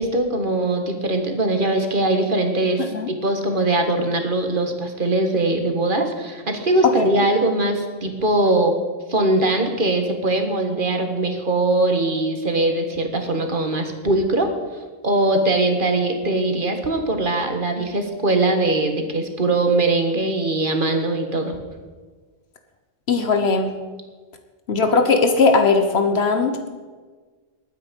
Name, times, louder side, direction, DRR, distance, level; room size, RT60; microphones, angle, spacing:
voice 1, 0.0-8.8 9.1-14.5 15.0-21.6, right 2 dB, 55° right, 5 dB, 1.9 m, -21 dB
voice 2, 23.1-23.7 24.7-26.7, left 4 dB, 85° left, 6 dB, 1.4 m, -18 dB
21.0 x 9.1 x 5.4 m, 1.4 s
omnidirectional pair, 1.0 m